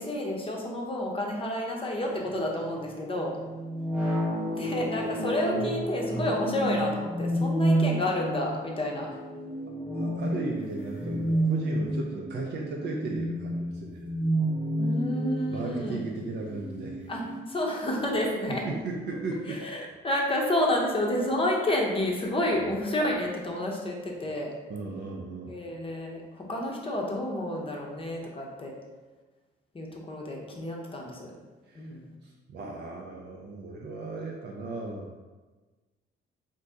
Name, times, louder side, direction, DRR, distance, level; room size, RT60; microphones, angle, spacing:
voice 1, 0.0-3.3 4.5-9.1 14.8-16.1 17.1-17.2 17.5-18.6 19.5-19.8 20.0-24.5 25.5-28.7 29.7-31.3 31.7-32.1, left 1 dB, 25° left, -1 dB, 0.6 m, -30 dB
sound 1, 2.0-17.4, right 1 dB, 5° right, 0.8 m, -30 dB
voice 2, 9.9-14.1 15.5-17.0 18.5-19.6 22.5-22.8 24.7-25.6 31.7-31.9 32.2-35.1, right 3 dB, 60° right, -1 dB, 0.5 m, -36 dB
2.7 x 2.6 x 3.4 m, 1.3 s
cardioid pair, 90°, 20 cm